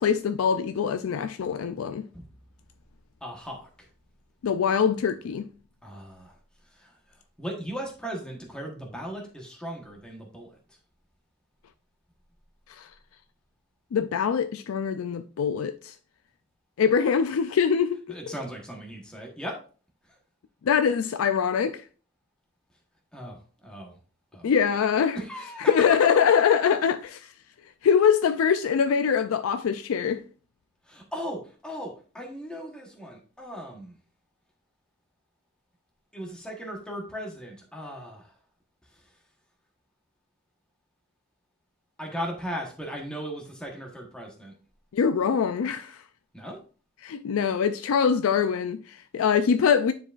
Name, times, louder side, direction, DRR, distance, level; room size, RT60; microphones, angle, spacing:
voice 1, 0.0-2.0 4.4-5.5 12.7-12.9 13.9-15.9 16.8-18.0 20.6-21.8 24.4-25.2 25.6-27.3 27.8-30.2 44.9-46.0 47.0-49.9, left 7 dB, 80° left, 0.4 m, -23 dB
voice 2, 3.2-3.9 5.8-6.4 6.7-6.9 7.4-10.6 18.1-19.6 23.1-24.0 24.3-24.5 25.1-26.0 26.2-26.3 30.9-34.0 36.1-38.3 42.0-44.5 46.3-46.6, equal, 5° left, 1.2 m, -37 dB
9.8 x 4.7 x 2.5 m
head